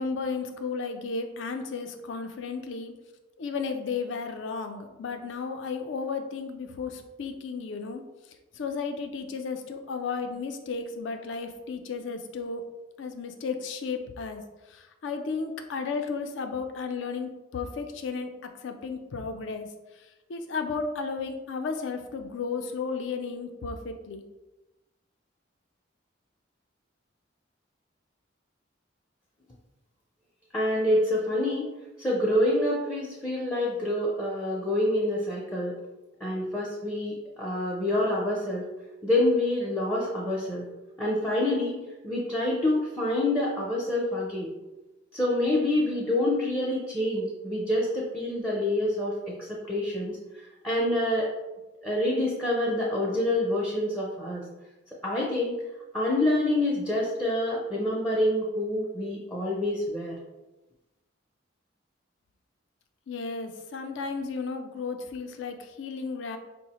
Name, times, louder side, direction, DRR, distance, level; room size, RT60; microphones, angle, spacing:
voice 1, 0.0-2.9 3.4-8.0 8.5-12.6 13.0-18.3 18.6-24.2 63.1-66.4, left 4 dB, 75° left, 6 dB, 0.4 m, -34 dB
voice 2, 30.5-31.7 32.0-35.8 36.2-38.7 39.0-40.7 41.0-44.5 45.1-50.2 50.6-51.3 51.8-54.5 55.0-55.6 55.9-60.2, left 1 dB, 10° left, -5 dB, 0.4 m, -27 dB
4.7 x 2.0 x 2.9 m, 1.1 s
head